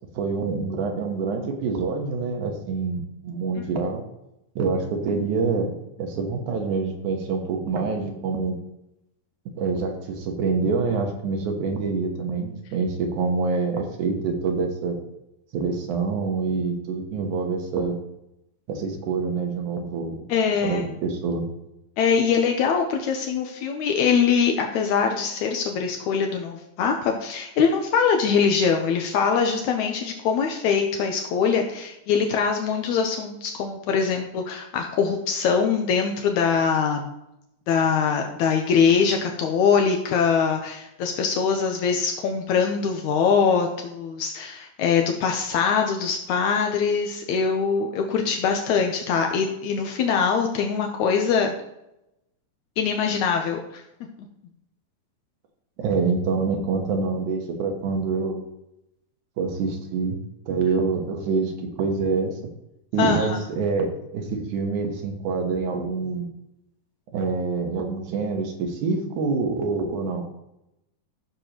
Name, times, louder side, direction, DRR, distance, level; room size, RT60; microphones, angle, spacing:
voice 1, 0.1-4.0 4.6-5.7 6.0-8.6 9.6-15.0 15.5-18.0 18.7-20.3 20.6-21.5 55.8-58.4 59.4-60.2 60.5-62.3 62.9-66.3 67.1-70.2, right 4 dB, 80° right, 3 dB, 2.7 m, -26 dB
voice 2, 20.3-20.8 22.0-37.1 37.7-51.5 52.8-53.8 63.0-63.4, left 6 dB, 80° left, 3 dB, 2.1 m, -23 dB
14.0 x 6.7 x 3.0 m, 0.85 s
omnidirectional pair, 3.5 m